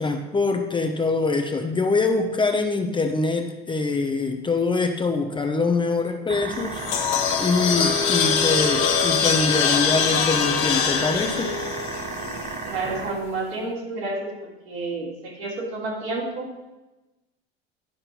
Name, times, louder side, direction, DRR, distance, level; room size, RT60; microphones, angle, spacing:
voice 1, 0.0-7.1 7.4-11.5, left 3 dB, 15° left, 5 dB, 0.8 m, -24 dB
sound 1, 6.3-13.1, right 5 dB, 25° right, 0.8 m, -34 dB
sound 2, 6.5-12.8, left 7 dB, 60° left, 1.5 m, -23 dB
voice 2, 12.6-16.7, right 2 dB, 70° right, -3 dB, 3.2 m, -30 dB
10.5 x 5.7 x 5.3 m, 1.1 s
figure-of-eight pair, 80°, 33 cm